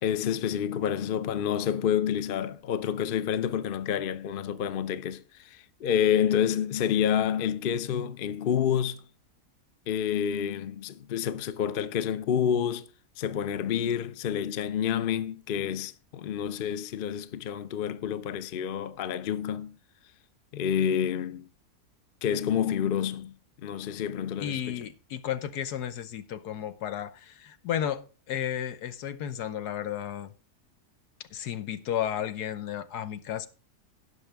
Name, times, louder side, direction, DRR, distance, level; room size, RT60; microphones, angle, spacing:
voice 1, 0.0-9.0 9.9-12.9 13.2-19.8 20.5-21.5 22.2-23.3 23.6-24.9, left 9 dB, 55° left, 0.6 m, -28 dB
voice 2, 24.4-28.0 28.3-30.3 31.3-33.5, left 10 dB, 85° left, 1.4 m, -33 dB
16.5 x 6.1 x 3.4 m
omnidirectional pair, 1.7 m